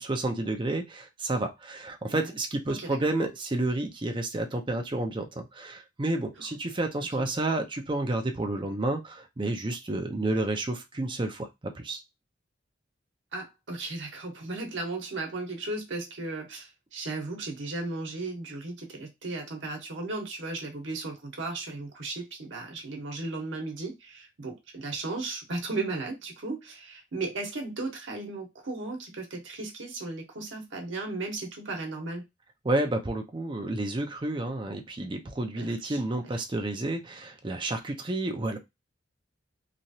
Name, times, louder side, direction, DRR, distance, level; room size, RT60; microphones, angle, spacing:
voice 1, 0.0-12.0 32.6-38.6, right 2 dB, 25° right, 0.5 m, -30 dB
voice 2, 2.0-2.3 2.7-3.0 7.2-7.3 13.3-32.2 35.6-36.4, right 3 dB, 75° right, 0.9 m, -36 dB
3.0 x 2.4 x 2.7 m
head